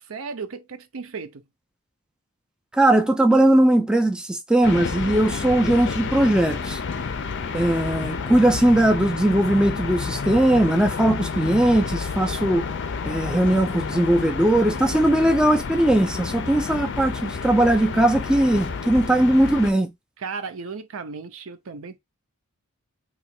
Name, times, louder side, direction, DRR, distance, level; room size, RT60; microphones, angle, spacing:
voice 1, 0.0-1.4 14.8-15.3 20.2-22.0, right 5 dB, 65° right, 0.6 m, -35 dB
voice 2, 2.7-6.8 7.5-12.6 13.1-19.9, right 1 dB, 5° right, 0.4 m, -19 dB
sound 1, 4.6-19.7, left 5 dB, 55° left, 0.5 m, -30 dB
2.9 x 2.4 x 4.2 m
head